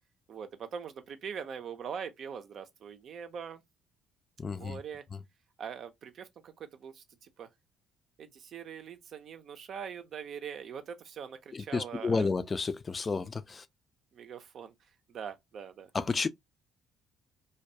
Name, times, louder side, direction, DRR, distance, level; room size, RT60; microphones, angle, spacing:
voice 1, 0.3-3.6 4.5-5.0 5.6-7.5 8.2-12.3 14.1-14.7 15.1-15.9, right 7 dB, 55° right, 0.5 m, -42 dB
voice 2, 4.4-4.8 5.1-5.2 11.5-13.6 15.9-16.3, left 4 dB, 35° left, 0.3 m, -31 dB
2.2 x 2.2 x 2.7 m
hypercardioid pair, 55°, 0 cm